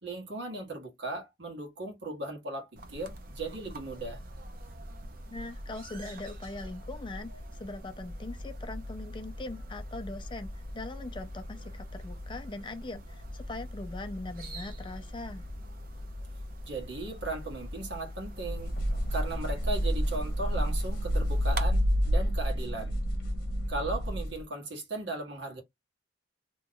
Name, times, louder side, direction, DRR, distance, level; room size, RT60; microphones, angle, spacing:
voice 1, 0.0-4.2 16.6-18.7 19.1-23.0 23.7-25.6, right 2 dB, 65° right, 1.5 m, -37 dB
sound 1, 2.8-21.7, equal, 50° right, 0.7 m, -42 dB
voice 2, 5.3-7.3 7.6-15.4, left 2 dB, 25° left, 0.4 m, -41 dB
sound 2, 18.4-24.4, equal, 50° left, 0.9 m, -29 dB
3.0 x 2.3 x 3.7 m
head